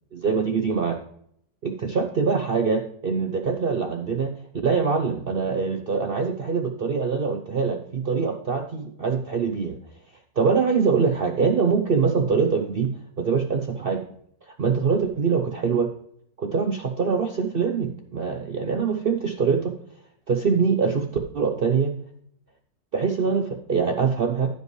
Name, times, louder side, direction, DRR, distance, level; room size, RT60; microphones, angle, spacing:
voice 1, 0.1-1.0 1.6-4.3 4.6-9.7 10.4-12.9 13.2-14.0 14.6-15.9 16.4-19.7 20.3-21.0 21.3-21.9 22.9-24.5, right 5 dB, 65° right, 4 dB, 0.5 m, -23 dB
15.0 x 5.4 x 3.1 m, 0.68 s
omnidirectional pair, 1.9 m